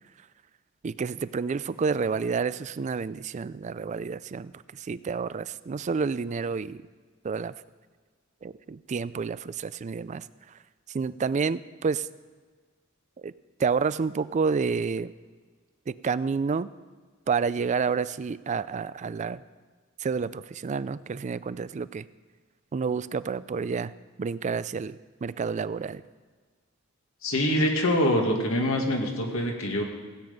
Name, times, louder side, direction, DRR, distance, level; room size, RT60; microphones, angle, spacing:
voice 1, 0.8-6.8 7.2-7.5 8.4-10.2 10.9-12.1 13.2-13.3 13.6-15.1 15.9-16.7 17.3-19.4 20.0-22.1 22.7-23.9 24.2-26.0, right 5 dB, 35° right, 17 dB, 0.3 m, -29 dB
voice 2, 27.2-29.8, left 1 dB, 90° left, 1 dB, 2.0 m, -25 dB
16.5 x 8.8 x 5.3 m, 1.5 s
head